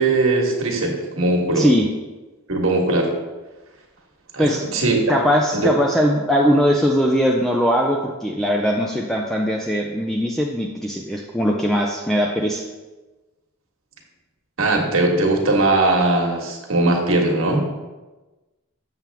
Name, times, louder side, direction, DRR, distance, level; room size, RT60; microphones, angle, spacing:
voice 1, 0.0-1.7 2.5-3.1 4.3-5.0 5.5-5.7 14.6-17.7, right 2 dB, 65° right, 0 dB, 1.5 m, -19 dB
voice 2, 1.6-1.9 4.4-4.7 5.1-12.6, equal, ahead, 0 dB, 0.4 m, -20 dB
7.4 x 7.2 x 3.5 m, 1.2 s
head